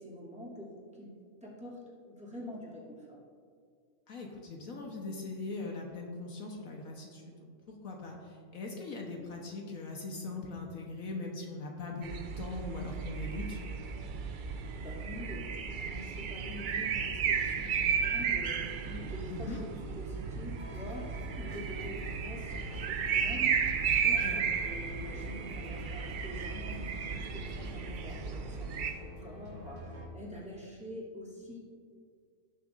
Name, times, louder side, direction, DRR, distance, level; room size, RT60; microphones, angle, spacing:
voice 1, 0.0-3.2 14.5-23.8 24.1-31.6, equal, 5° right, -7 dB, 2.4 m, -46 dB
voice 2, 4.1-7.5 7.8-13.6 19.3-19.6 24.0-24.4, left 3 dB, 70° left, 0 dB, 1.4 m, -41 dB
sound 1, 12.0-28.9, right 6 dB, 75° right, 0.4 m, -34 dB
sound 2, 20.5-30.1, left 1 dB, 55° right, 2.8 m, -48 dB
17.0 x 6.7 x 2.5 m, 2.2 s
omnidirectional pair, 1.5 m